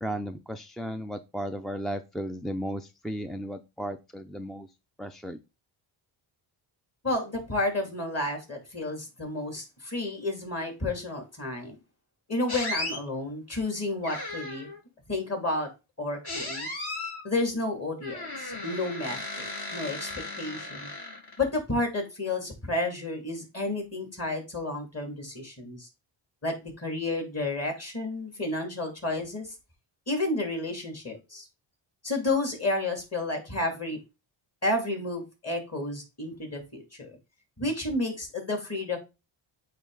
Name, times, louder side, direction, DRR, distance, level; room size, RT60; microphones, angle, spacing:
voice 1, 0.0-4.7 5.0-5.4, equal, ahead, 9 dB, 0.3 m, -35 dB
voice 2, 7.0-11.8 12.3-14.7 15.1-15.7 16.0-16.7 17.2-20.1 20.4-20.9 21.4-25.9 26.4-29.5 30.1-31.5 32.0-34.0 34.6-37.2 37.6-39.0, left 2 dB, 30° left, 3 dB, 2.8 m, -31 dB
sound 1, 12.5-13.0 14.0-14.8 16.2-17.2 18.0-21.5, left 2 dB, 50° left, 3.1 m, -36 dB
8.5 x 3.3 x 3.9 m, 0.27 s
cardioid pair, 85°, 50 cm